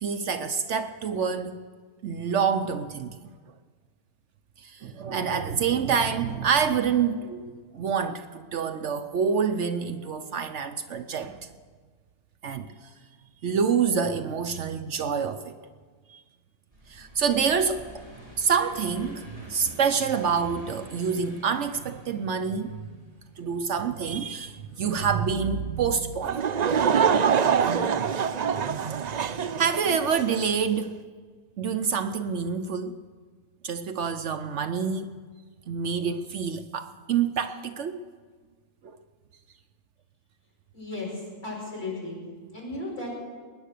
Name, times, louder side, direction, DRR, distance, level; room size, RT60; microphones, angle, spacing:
voice 1, 0.0-1.6 2.0-3.3 4.6-11.5 12.4-12.7 13.4-15.6 16.1-16.2 16.9-18.0 18.4-23.1 23.4-26.5 27.6-27.8 29.2-30.9 31.6-33.0 33.6-35.1 35.7-38.0 38.8-39.0, right 6 dB, 65° right, 9 dB, 0.9 m, -27 dB
sound 1, 16.7-27.8 28.5-29.1 30.0-30.2 30.5-30.6, right 1 dB, 25° right, 3.7 m, -50 dB
Laughter / Crowd, 26.2-30.4, right 7 dB, 85° right, 0.3 m, -25 dB
voice 2, 40.7-42.2 42.5-43.1, left 2 dB, 55° left, -4 dB, 5.9 m, -35 dB
20.5 x 10.0 x 6.6 m, 1.5 s
omnidirectional pair, 1.4 m